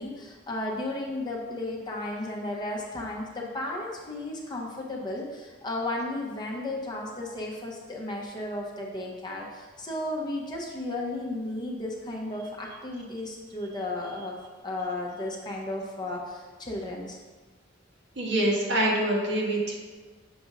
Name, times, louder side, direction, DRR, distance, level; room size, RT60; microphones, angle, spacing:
voice 1, 0.0-14.3 14.6-17.2, left 2 dB, 20° left, -2 dB, 0.7 m, -34 dB
voice 2, 18.2-19.8, right 1 dB, 65° right, -3 dB, 1.2 m, -25 dB
6.9 x 2.6 x 5.3 m, 1.4 s
head